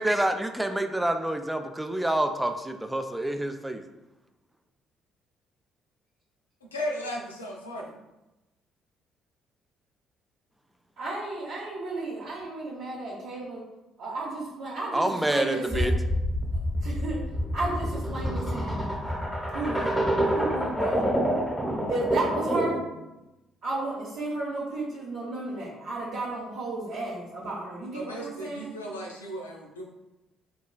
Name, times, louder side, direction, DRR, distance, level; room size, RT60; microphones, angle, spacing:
voice 1, 0.0-3.8 14.9-15.9, right 1 dB, 10° right, 6 dB, 0.3 m, -27 dB
voice 2, 6.6-7.9 27.9-29.8, equal, 90° left, -1 dB, 0.4 m, -35 dB
voice 3, 11.0-13.6 14.0-15.9 16.8-17.2 17.5-18.9 19.5-21.1 21.9-22.8 23.6-28.7, right 2 dB, 65° right, -6 dB, 0.7 m, -33 dB
sound 1, 15.7-22.9, equal, 10° left, 1.0 m, -27 dB
4.0 x 2.2 x 2.2 m, 0.99 s
hypercardioid pair, 50°, 0 cm